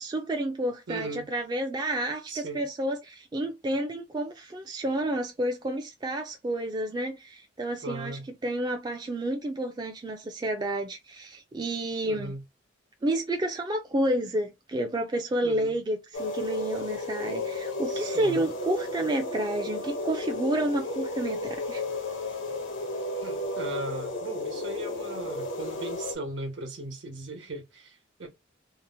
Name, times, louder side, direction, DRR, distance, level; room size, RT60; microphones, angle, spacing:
voice 1, 0.0-12.3 13.0-21.8, right 1 dB, 20° right, 0.3 m, -30 dB
voice 2, 0.9-1.3 2.3-2.6 7.8-8.3 12.1-12.4 15.4-15.8 17.9-18.4 23.2-28.3, right 2 dB, 70° right, 1.1 m, -37 dB
sound 1, 16.1-26.1, left 2 dB, 80° left, 0.7 m, -33 dB
2.8 x 2.0 x 2.7 m
head